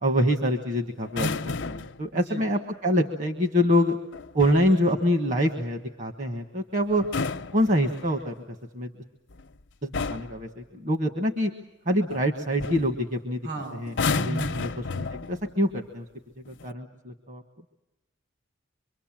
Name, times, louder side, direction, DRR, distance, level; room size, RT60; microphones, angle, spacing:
voice 1, 0.0-4.0 4.3-7.0 7.5-8.3 8.7-8.9 9.8-11.5 11.8-13.4 13.7-14.7 14.9-16.0 16.6-17.4, equal, 40° right, 5 dB, 1.5 m, -25 dB
sound 1, 1.0-2.0 4.1-4.7 6.9-8.3 9.3-9.5 9.9-10.4 12.1-12.3 12.6-12.9 13.9-15.5 16.5-16.7, left 4 dB, 65° left, 0.8 m, -31 dB
voice 2, 2.1-2.4 13.4-13.8 14.3-14.6, right 2 dB, 65° right, 8 dB, 7.0 m, -34 dB
25.0 x 24.0 x 7.5 m, 0.98 s
head